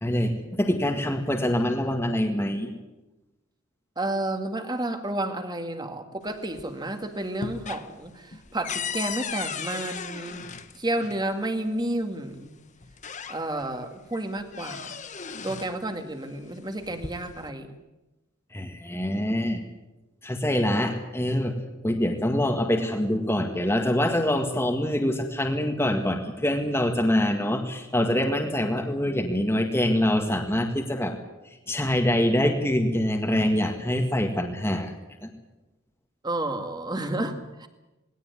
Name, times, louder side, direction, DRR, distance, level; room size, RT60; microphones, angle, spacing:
voice 1, 0.0-2.7 18.5-19.6 20.2-21.5 21.8-31.1 31.7-34.9 35.2-35.3, left 1 dB, 10° left, 3 dB, 1.8 m, -25 dB
voice 2, 4.0-12.5 13.3-15.0 15.4-17.8 36.2-37.7, right 1 dB, 20° right, 7 dB, 2.0 m, -31 dB
sound 1, 6.2-6.9 7.2-11.2 12.3-12.4 12.8-13.7 14.1-15.8 16.7-17.5, left 6 dB, 35° left, 1.1 m, -36 dB
20.0 x 17.5 x 9.6 m, 1.0 s
head